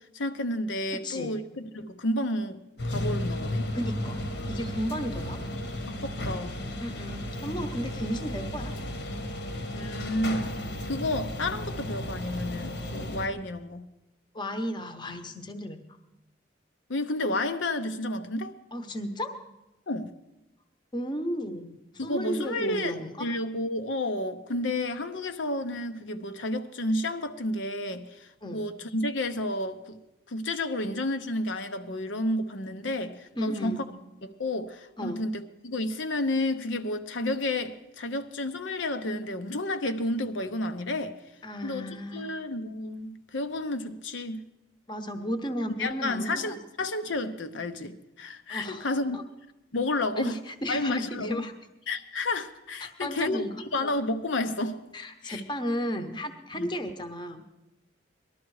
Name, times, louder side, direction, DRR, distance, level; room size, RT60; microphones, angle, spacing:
voice 1, 0.1-1.4 1.7-3.7 5.9-6.6 9.7-10.6 10.9-13.9 16.9-18.5 19.9-20.1 22.0-30.0 30.3-33.8 34.2-41.2 41.6-44.4 45.8-49.2 49.7-50.4 50.7-51.4 51.9-54.8 55.2-55.4 56.5-56.8, left 1 dB, 80° left, 0.9 m, -31 dB
voice 2, 1.0-1.4 3.7-4.2 4.5-5.4 6.8-8.7 14.3-15.8 18.7-19.3 20.9-23.3 28.4-28.6 33.3-33.8 35.0-35.2 41.4-42.3 44.9-46.6 48.5-48.9 49.1-49.2 50.2-51.5 52.8-53.6 54.9-57.4, equal, 25° left, 0.9 m, -34 dB
sound 1, 2.8-13.3, left 1 dB, 65° left, 1.3 m, -34 dB
19.5 x 12.5 x 4.8 m
head